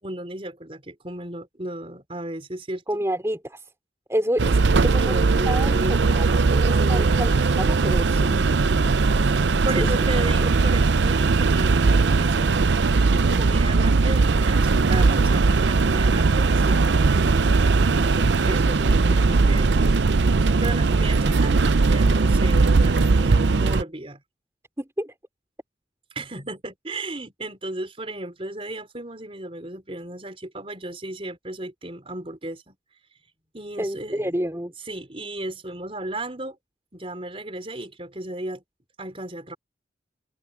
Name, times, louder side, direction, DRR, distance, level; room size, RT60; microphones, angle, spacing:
voice 1, 0.0-3.1 4.7-6.3 6.6-7.6 9.6-12.7 13.3-20.0 20.4-24.2 26.1-32.7 33.5-34.4 34.9-36.6 36.9-38.6 39.0-39.6, right 1 dB, 30° right, 4.4 m, -35 dB
voice 2, 2.9-3.6 4.1-4.6 4.8-5.1 5.5-7.3 7.6-8.6 9.8-9.9 24.8-25.1 33.8-34.7, equal, 15° right, 3.7 m, -28 dB
sound 1, 4.4-23.8, right 4 dB, 85° right, 0.6 m, -19 dB
head